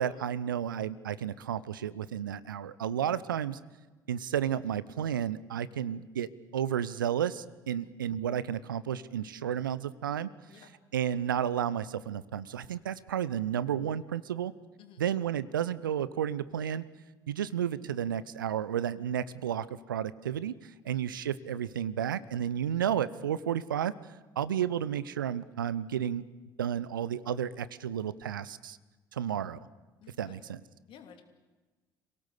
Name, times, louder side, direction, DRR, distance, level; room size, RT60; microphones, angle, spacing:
voice 1, 0.0-3.6 4.1-10.3 10.6-14.5 15.0-16.8 17.3-23.9 24.4-26.2 26.6-28.8 29.1-29.6 30.2-30.6, right 9 dB, 75° right, 18 dB, 0.7 m, -32 dB
voice 2, 30.0-30.4 30.9-31.2, left 8 dB, 50° left, 6 dB, 2.9 m, -54 dB
27.0 x 17.5 x 8.3 m, 1.2 s
figure-of-eight pair, 55°, 11 cm